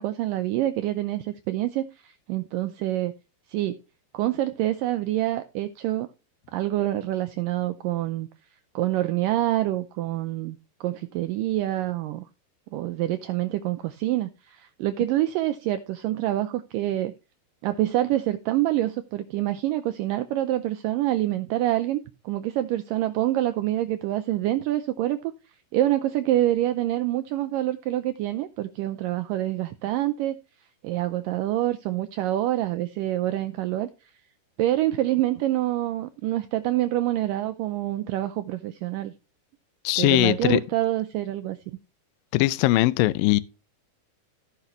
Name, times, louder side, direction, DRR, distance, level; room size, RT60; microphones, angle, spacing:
voice 1, 0.0-3.1 3.5-3.8 4.1-6.1 6.5-8.3 8.8-12.2 12.7-17.1 17.6-25.3 25.7-30.4 30.8-33.9 34.6-39.1 40.0-41.6, right 14 dB, 90° right, 1.9 m, -26 dB
voice 2, 39.8-40.6 42.3-43.4, left 18 dB, 80° left, 2.1 m, -20 dB
16.0 x 5.9 x 3.1 m
omnidirectional pair, 4.6 m